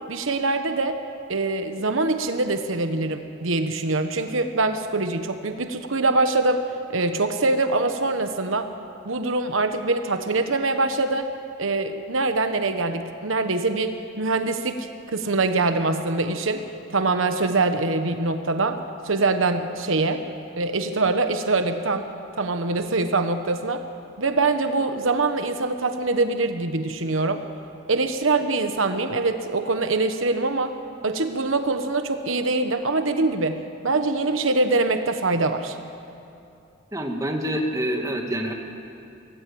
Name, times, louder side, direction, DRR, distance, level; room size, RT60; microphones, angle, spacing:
voice 1, 0.1-1.0 1.3-6.6 6.9-8.7 9.0-11.3 11.6-16.6 16.9-18.8 19.0-20.2 20.6-22.0 22.4-23.8 24.2-27.4 27.9-30.7 31.0-35.8, right 3 dB, 80° right, 8 dB, 1.2 m, -24 dB
voice 2, 36.9-38.5, equal, 15° right, 2 dB, 2.2 m, -26 dB
25.0 x 18.5 x 8.6 m, 2.6 s
head